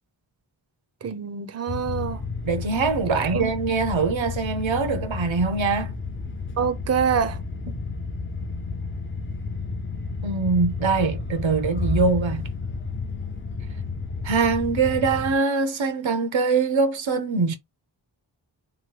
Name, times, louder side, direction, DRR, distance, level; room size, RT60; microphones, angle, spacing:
voice 1, 1.0-2.2 3.3-3.5 6.6-7.4, right 7 dB, 35° right, 0.5 m, -25 dB
sound 1, 1.7-15.4, left 4 dB, 30° left, 0.4 m, -31 dB
voice 2, 2.4-5.9 10.2-12.5 14.2-17.6, right 4 dB, 90° right, 0.7 m, -23 dB
3.0 x 2.2 x 2.9 m
wide cardioid pair, 65°, 45 cm